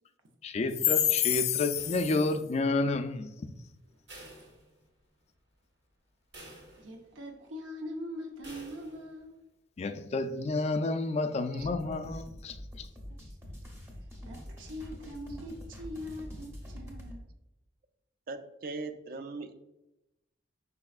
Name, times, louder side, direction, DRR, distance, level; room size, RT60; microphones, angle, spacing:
voice 1, 0.4-3.5 9.8-12.6, left 4 dB, 35° left, 8 dB, 0.3 m, -29 dB
sound 1, 1.7-2.6 4.1-5.2 5.6-5.7 6.3-7.2 8.4-9.2, right 1 dB, 70° right, 1.5 m, -51 dB
voice 2, 6.8-9.4 12.9-13.4 14.0-17.3, equal, 85° right, 3 dB, 0.7 m, -42 dB
sound 2, 11.6-17.2, equal, 15° right, 0.6 m, -45 dB
voice 3, 18.3-19.5, right 3 dB, 50° right, 9 dB, 0.4 m, -40 dB
5.3 x 4.2 x 2.3 m, 0.93 s
head